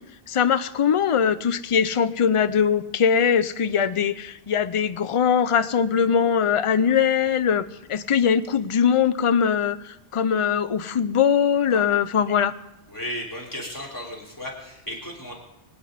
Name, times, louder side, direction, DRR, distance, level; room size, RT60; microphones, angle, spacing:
voice 1, 0.3-12.5, left 7 dB, 40° left, 13 dB, 0.5 m, -21 dB
voice 2, 12.9-15.3, equal, 20° left, -4 dB, 3.3 m, -34 dB
24.0 x 9.7 x 5.0 m, 0.94 s
omnidirectional pair, 1.1 m